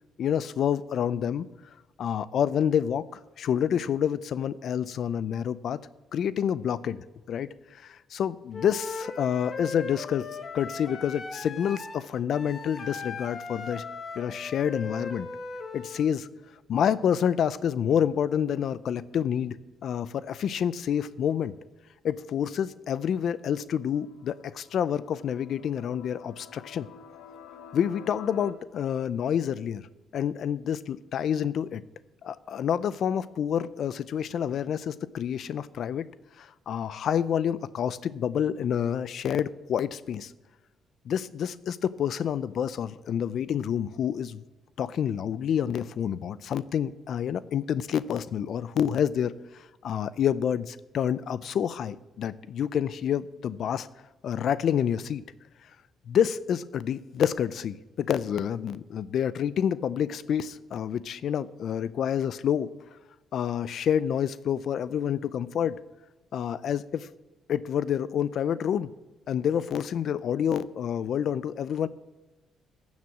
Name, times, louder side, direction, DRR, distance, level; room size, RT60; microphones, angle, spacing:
voice 1, 0.2-1.5 2.0-5.8 6.1-10.3 10.5-13.8 14.2-15.3 15.7-16.3 16.7-19.6 19.8-21.5 22.0-26.9 27.7-29.9 30.1-31.8 32.2-36.1 36.4-40.3 41.1-44.4 44.8-53.9 54.2-55.2 56.1-62.7 63.3-65.8 66.3-67.1 67.5-68.9 69.3-71.9, left 9 dB, 65° left, 17 dB, 0.5 m, -28 dB
Wind instrument woodwind instrument, 8.5-16.0, left 4 dB, 40° left, 1.2 m, -38 dB
sound 1, 23.0-28.5, left 8 dB, 90° left, 0.9 m, -50 dB
15.0 x 7.4 x 6.0 m, 1.1 s
cardioid pair, 90°, 0 cm